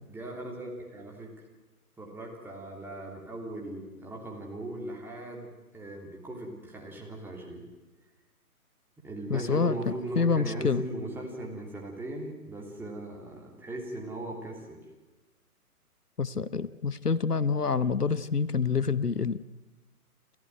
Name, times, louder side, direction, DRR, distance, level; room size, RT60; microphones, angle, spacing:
voice 1, 0.1-1.3 2.0-7.6 9.0-14.8, right 1 dB, 5° right, -1 dB, 3.1 m, -38 dB
voice 2, 9.3-10.8 16.2-19.4, left 5 dB, 85° left, 17 dB, 1.0 m, -27 dB
28.5 x 14.5 x 9.3 m, 1.1 s
figure-of-eight pair, 130°, 45 cm